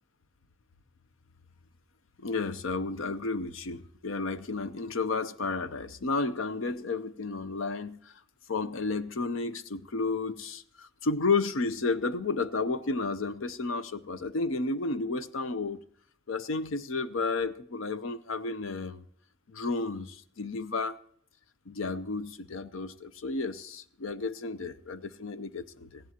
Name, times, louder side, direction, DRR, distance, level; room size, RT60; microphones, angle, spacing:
voice 1, 2.2-8.0 8.5-15.8 16.3-19.0 19.5-21.0 21.7-26.0, left 3 dB, 75° left, 0.7 m, -32 dB
18.5 x 15.5 x 2.9 m
head